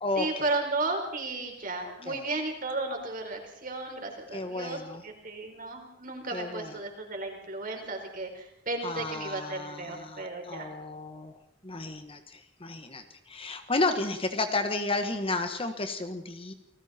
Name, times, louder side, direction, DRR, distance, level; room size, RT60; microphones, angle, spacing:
voice 1, 0.2-4.8 5.0-10.7, right 2 dB, 45° right, 3 dB, 4.7 m, -34 dB
voice 2, 1.8-2.2 4.3-5.0 6.3-6.8 8.8-11.3 11.6-16.5, left 2 dB, 30° left, 7 dB, 1.5 m, -32 dB
29.5 x 19.5 x 4.4 m, 0.76 s
head